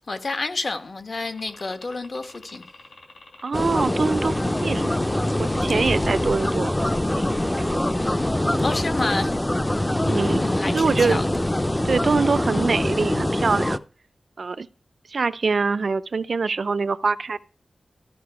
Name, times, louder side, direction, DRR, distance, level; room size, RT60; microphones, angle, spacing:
voice 1, 0.1-2.6 5.7-5.8 8.6-9.4 10.4-11.3, left 3 dB, 55° left, 1.2 m, -29 dB
sound 1, 1.3-8.0, left 3 dB, 80° left, 3.8 m, -47 dB
voice 2, 3.4-4.9 5.4-6.7 7.0-7.2 7.6-7.7 10.1-10.4 10.7-11.2 11.8-13.8 14.4-14.7 15.1-17.4, right 4 dB, 70° right, 0.5 m, -24 dB
sound 2, 3.5-13.8, left 1 dB, 15° left, 0.5 m, -24 dB
14.0 x 5.7 x 4.7 m
wide cardioid pair, 110°, 0 cm